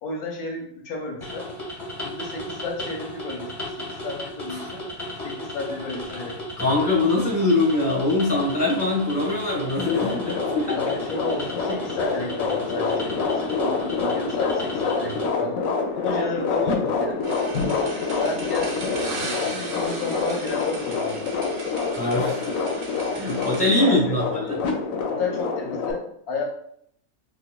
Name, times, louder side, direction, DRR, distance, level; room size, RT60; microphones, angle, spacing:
voice 1, 0.0-1.5 2.0-4.9 5.2-6.8 10.7-17.2 18.2-18.9 19.3-21.3 23.8-24.2 25.1-26.4, left 3 dB, 90° left, 0 dB, 1.2 m, -32 dB
sound 1, 1.2-15.3, left 1 dB, 30° left, 0.7 m, -35 dB
voice 2, 6.6-10.8 22.0-22.5 23.1-24.6, left 2 dB, 10° right, -6 dB, 1.0 m, -23 dB
sound 2, 9.8-25.9, left 4 dB, 70° left, 0.9 m, -27 dB
sound 3, 17.2-23.7, right 2 dB, 65° right, 1.0 m, -36 dB
4.5 x 2.1 x 2.2 m, 0.68 s
omnidirectional pair, 1.5 m